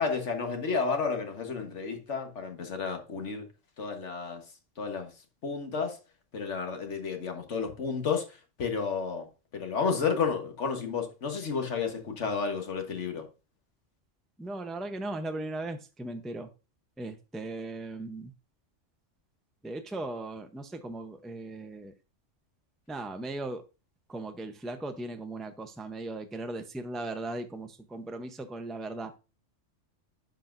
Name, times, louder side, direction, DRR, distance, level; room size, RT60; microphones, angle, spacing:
voice 1, 0.0-3.5 3.8-4.4 4.8-5.1 5.4-6.0 6.3-9.3 9.5-13.3, left 5 dB, 70° left, 1.7 m, -31 dB
voice 2, 14.4-16.5 17.0-18.3 19.6-21.9 22.9-23.6 24.1-29.1, right 2 dB, ahead, 0.4 m, -38 dB
10.5 x 5.6 x 2.6 m
omnidirectional pair, 1.3 m